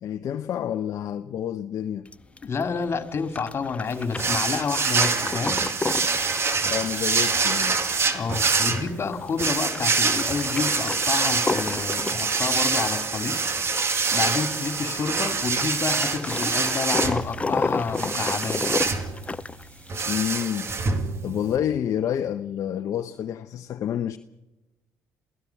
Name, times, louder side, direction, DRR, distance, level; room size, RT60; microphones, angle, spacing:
voice 1, 0.0-2.1 6.7-7.8 20.1-20.7 21.2-24.2, left 10 dB, 60° left, 0.8 m, -28 dB
sound 1, 2.1-20.5, left 3 dB, 20° left, 0.6 m, -33 dB
voice 2, 2.4-5.6 8.1-13.4 14.1-18.6, left 5 dB, 40° left, 2.5 m, -29 dB
sound 2, 4.2-21.6, right 4 dB, 40° right, 2.2 m, -25 dB
28.5 x 17.0 x 5.9 m
hypercardioid pair, 65°, 6 cm